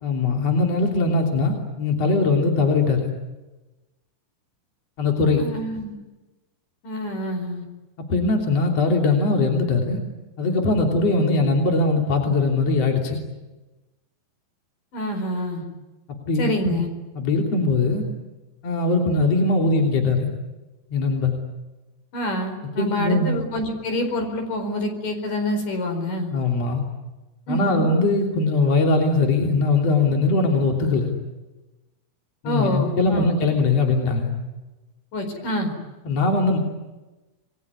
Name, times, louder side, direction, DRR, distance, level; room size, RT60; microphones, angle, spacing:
voice 1, 0.0-3.0 5.0-5.5 8.1-10.0 10.4-13.2 16.3-16.8 17.2-18.0 18.6-20.3 20.9-21.3 22.8-23.4 26.3-26.8 27.5-31.1 32.4-34.3 36.1-36.6, left 3 dB, 45° left, 1 dB, 4.1 m, -21 dB
voice 2, 5.4-6.0 6.8-7.7 14.9-15.7 16.4-16.9 22.1-26.3 27.5-27.9 32.4-33.3 35.1-35.7, left 1 dB, 65° left, 5 dB, 6.2 m, -27 dB
28.5 x 21.5 x 9.6 m, 1.1 s
omnidirectional pair, 4.1 m